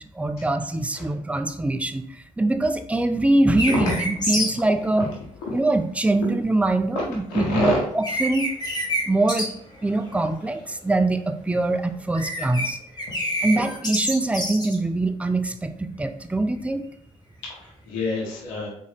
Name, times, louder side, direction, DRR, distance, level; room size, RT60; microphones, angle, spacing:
voice 1, 0.2-2.1 2.4-5.1 5.5-8.5 9.1-9.5 9.8-12.8 13.4-16.8, right 2 dB, 10° right, 8 dB, 0.4 m, -23 dB
sound 1, 3.6-4.5 7.6-7.7 8.0-9.0 9.3-9.4 9.7-10.3 10.6-10.9 12.0-12.7 13.0-14.8, equal, 25° left, 1.3 m, -27 dB
voice 2, 7.3-7.8 17.4-18.7, left 2 dB, 80° left, -3 dB, 1.0 m, -27 dB
3.6 x 2.7 x 3.3 m, 0.65 s
hypercardioid pair, 45°, 17 cm